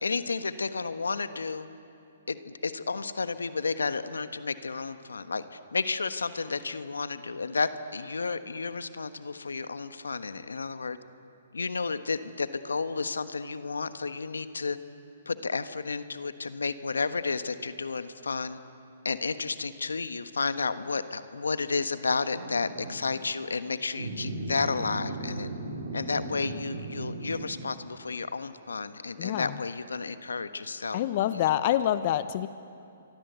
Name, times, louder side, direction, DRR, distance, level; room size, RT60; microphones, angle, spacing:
voice 1, 0.0-1.7 2.3-11.0 11.5-14.8 15.2-18.6 19.0-25.5 25.9-31.6, left 4 dB, 85° left, 11 dB, 1.3 m, -32 dB
sound 1, 22.2-23.1 24.0-27.5, right 2 dB, 70° right, 4.6 m, -37 dB
voice 2, 29.2-29.6 30.9-32.5, left 12 dB, 45° left, 13 dB, 0.8 m, -26 dB
27.0 x 24.0 x 8.2 m, 2.6 s
hypercardioid pair, 135°, 0 cm